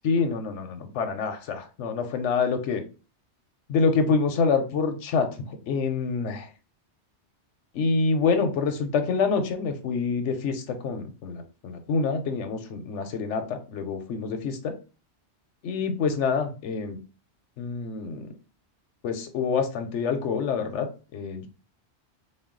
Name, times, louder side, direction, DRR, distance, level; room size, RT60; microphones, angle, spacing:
voice 1, 0.0-2.8 3.7-6.5 7.7-14.7 15.6-17.0 17.6-18.3 19.0-21.5, left 5 dB, 90° left, 7 dB, 1.0 m, -26 dB
3.9 x 2.2 x 3.7 m, 0.34 s
omnidirectional pair, 1.2 m